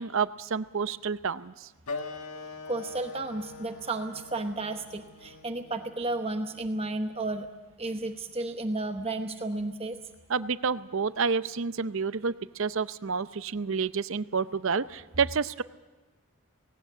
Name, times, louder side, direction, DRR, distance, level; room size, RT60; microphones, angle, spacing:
voice 1, 0.0-1.7 10.3-15.6, right 5 dB, 60° right, 14 dB, 0.6 m, -29 dB
Wind instrument woodwind instrument, 1.9-7.0, left 3 dB, 85° left, 1.6 m, -43 dB
voice 2, 2.7-7.5 7.8-10.0, right 2 dB, 25° right, 6 dB, 0.9 m, -33 dB
18.5 x 17.5 x 9.1 m, 1.2 s
head